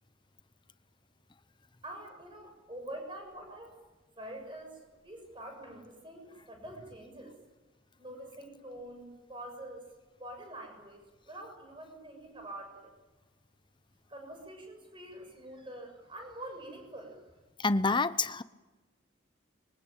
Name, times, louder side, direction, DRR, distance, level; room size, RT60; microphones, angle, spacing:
voice 1, 1.8-3.8 4.2-7.4 8.0-9.8 10.2-12.9 14.1-17.3, right 1 dB, 25° right, 3 dB, 7.1 m, -46 dB
voice 2, 17.6-18.4, left 3 dB, 25° left, 14 dB, 0.8 m, -27 dB
25.5 x 23.5 x 9.0 m, 1.2 s
head